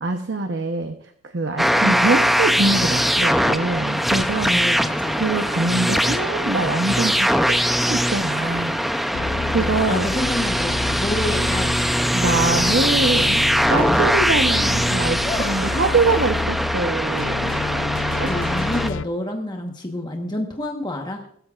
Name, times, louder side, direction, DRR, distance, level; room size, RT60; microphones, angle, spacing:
voice 1, 0.0-0.9 1.2-4.6 5.2-8.8 9.5-10.1 12.1-13.4 13.7-17.5 18.1-18.6, right 3 dB, 60° right, 6 dB, 0.8 m, -24 dB
sound 1, 1.6-18.9, equal, ahead, 0.5 m, -21 dB
voice 2, 4.5-5.2 5.6-6.0 9.5-12.1 15.2-15.9 18.3-21.2, left 1 dB, 20° left, 2 dB, 1.1 m, -29 dB
sound 2, 9.1-19.0, left 4 dB, 85° left, 0.5 m, -30 dB
21.0 x 13.0 x 2.4 m, 0.66 s
head